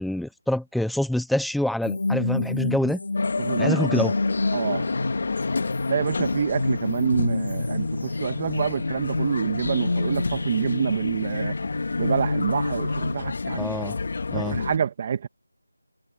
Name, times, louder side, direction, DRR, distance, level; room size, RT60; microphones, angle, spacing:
voice 1, 0.0-3.0 3.6-4.1 13.6-14.0 14.3-14.6, left 1 dB, ahead, 0.9 m, -26 dB
sound 1, 1.8-13.1, left 2 dB, 65° left, 2.9 m, -28 dB
sound 2, 3.1-14.8, left 4 dB, 45° left, 2.5 m, -31 dB
voice 2, 3.4-3.8 4.5-4.9 5.9-11.5 12.0-13.6 14.3-15.3, right 7 dB, 25° right, 2.5 m, -27 dB
figure-of-eight pair, 170°, 0 cm